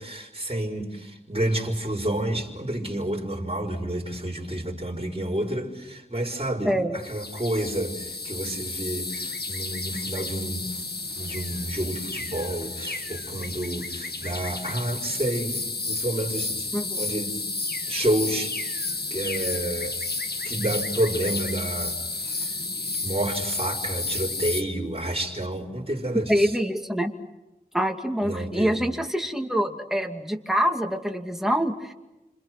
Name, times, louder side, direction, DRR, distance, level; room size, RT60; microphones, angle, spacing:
voice 1, 0.0-10.8 11.1-15.6 15.8-17.4 17.9-18.8 19.1-20.0 20.4-22.0 22.4-22.6 23.0-26.6 28.2-28.8, right 1 dB, 35° right, -2 dB, 4.9 m, -29 dB
voice 2, 6.6-7.0 16.7-17.0 26.3-27.1 27.7-31.9, equal, ahead, 3 dB, 2.6 m, -25 dB
sound 1, 7.0-24.6, left 3 dB, 75° left, 1.7 m, -32 dB
29.0 x 26.5 x 6.2 m, 1.0 s
wide cardioid pair, 45°, 17 cm